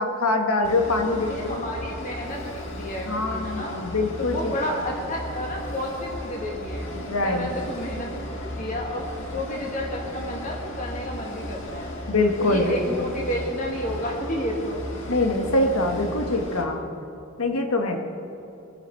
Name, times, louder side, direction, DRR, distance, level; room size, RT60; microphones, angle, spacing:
voice 1, 0.0-1.6 3.1-4.5 7.1-7.5 12.1-13.1 15.1-16.8 17.4-18.0, left 2 dB, 80° left, 4 dB, 1.5 m, -24 dB
sound 1, 0.6-16.6, equal, 60° left, 1.9 m, -35 dB
voice 2, 1.2-3.8 4.2-6.9 7.2-8.1 8.4-11.9 12.4-14.8, equal, 35° left, -2 dB, 1.7 m, -31 dB
21.5 x 10.0 x 4.5 m, 2.9 s
head